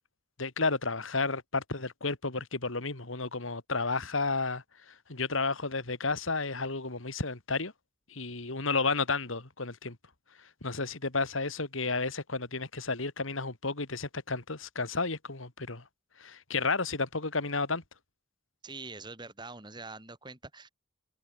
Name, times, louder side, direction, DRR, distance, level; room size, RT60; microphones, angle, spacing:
voice 1, 0.4-7.7 8.1-10.0 10.6-15.8 16.2-17.8, left 3 dB, 80° left, 2.7 m, -32 dB
voice 2, 18.6-20.7, right 3 dB, 20° right, 3.3 m, -44 dB
head